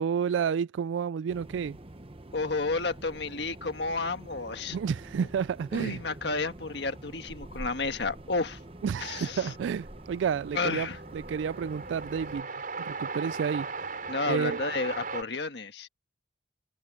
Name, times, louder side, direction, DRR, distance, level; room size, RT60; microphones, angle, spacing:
voice 1, 0.0-1.8 4.7-6.0 8.8-10.9 11.1-12.5 12.8-13.7 14.3-14.6, right 7 dB, 80° right, 0.3 m, -30 dB
sound 1, 1.3-12.4, right 1 dB, 30° right, 1.0 m, -46 dB
voice 2, 2.3-4.8 5.7-8.6 9.0-9.5 10.5-11.0 14.1-15.9, left 3 dB, 65° left, 1.5 m, -31 dB
Train, 7.8-7.9 8.1-15.2, right 4 dB, 45° right, 5.6 m, -39 dB
head